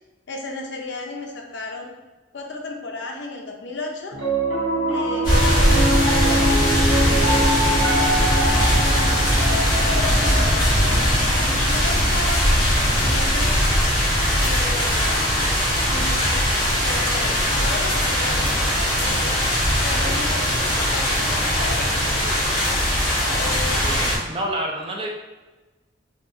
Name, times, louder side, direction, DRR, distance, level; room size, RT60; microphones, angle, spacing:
voice 1, 0.3-1.9 2.3-4.2 4.9-6.5 7.0-9.2 9.7-13.6 14.4-19.4 19.8-22.6 23.3-24.1, left 2 dB, 70° left, 1 dB, 0.7 m, -34 dB
Piano, 4.1-14.5, right 1 dB, 90° right, 1.0 m, -25 dB
sound 1, 5.2-24.2, equal, 25° left, 1.4 m, -20 dB
voice 2, 23.1-23.5 23.8-25.1, right 1 dB, 30° right, 1 dB, 0.4 m, -29 dB
4.4 x 2.9 x 2.6 m, 1.2 s
head